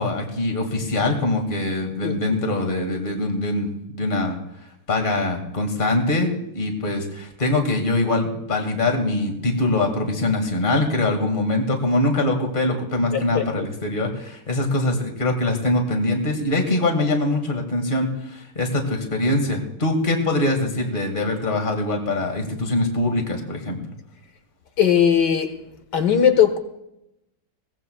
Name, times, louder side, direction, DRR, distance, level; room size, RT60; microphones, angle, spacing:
voice 1, 0.0-3.7 3.9-4.4 4.9-23.8, left 2 dB, 25° left, 3 dB, 2.2 m, -23 dB
voice 2, 2.0-2.4 13.1-13.6 24.8-25.6 25.9-26.6, left 8 dB, 60° left, 6 dB, 2.0 m, -19 dB
22.0 x 18.0 x 2.4 m, 0.84 s
omnidirectional pair, 2.1 m